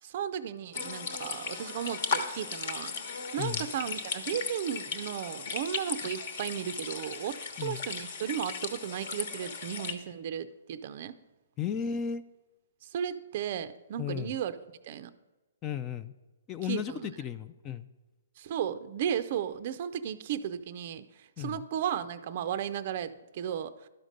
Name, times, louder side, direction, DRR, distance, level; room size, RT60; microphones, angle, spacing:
voice 1, 0.0-2.9 3.3-11.2 12.8-14.5 14.8-15.1 16.7-17.1 18.4-23.9, right 9 dB, 45° right, 11 dB, 0.4 m, -35 dB
sound 1, 0.7-9.9, left 5 dB, 55° left, 1.2 m, -36 dB
voice 2, 3.4-3.7 7.6-7.8 11.6-12.2 14.0-14.4 15.6-16.1 16.5-17.9 21.4-21.6, left 8 dB, 20° left, 12 dB, 0.3 m, -34 dB
11.5 x 5.1 x 6.5 m, 1.2 s
hypercardioid pair, 155°, 0 cm